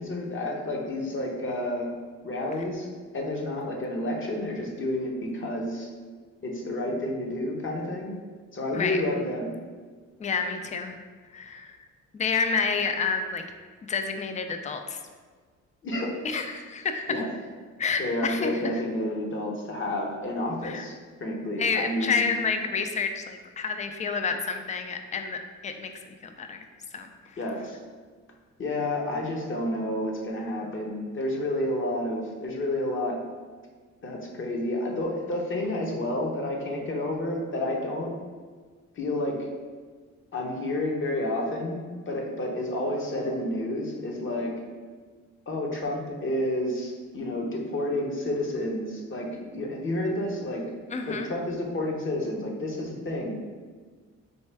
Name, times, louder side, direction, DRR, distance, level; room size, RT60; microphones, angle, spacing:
voice 1, 0.0-1.9 2.2-2.9 3.1-5.9 6.4-8.2 8.5-9.5 15.8-16.1 17.1-17.3 18.0-20.9 21.2-22.2 27.4-27.8 28.6-33.2 34.0-38.1 39.0-39.4 40.3-41.8 42.1-44.5 45.5-50.6 51.1-53.4, left 1 dB, 40° left, 0 dB, 0.9 m, -30 dB
voice 2, 10.2-10.9 11.3-11.8 12.1-13.4 13.9-15.0 16.2-17.2 17.8-18.6 20.6-20.9 21.6-26.6 26.9-27.4 50.9-51.3, left 5 dB, 25° left, 6 dB, 0.4 m, -29 dB
4.3 x 3.2 x 3.4 m, 1.5 s
cardioid pair, 90°, 30 cm